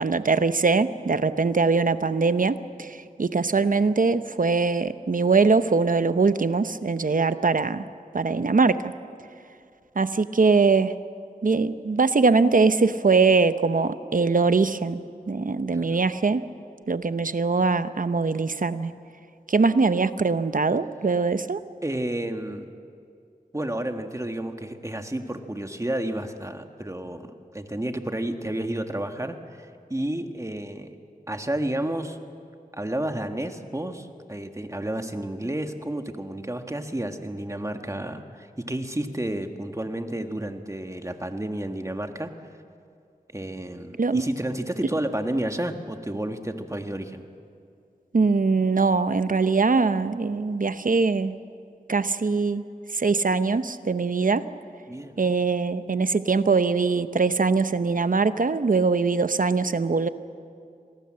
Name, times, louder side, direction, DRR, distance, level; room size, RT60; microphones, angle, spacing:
voice 1, 0.0-7.8 8.1-8.9 10.0-10.9 11.4-15.0 15.3-16.4 16.9-18.9 19.5-21.6 44.0-44.2 48.1-51.3 51.9-52.6 52.9-54.4 55.2-60.1, right 4 dB, 60° right, 11 dB, 0.8 m, -22 dB
voice 2, 21.8-22.7 23.5-30.9 31.3-32.2 32.7-42.3 43.3-47.2 54.9-55.2, right 1 dB, 20° right, 5 dB, 1.7 m, -31 dB
26.0 x 18.5 x 7.7 m, 2.3 s
wide cardioid pair, 60°, 15 cm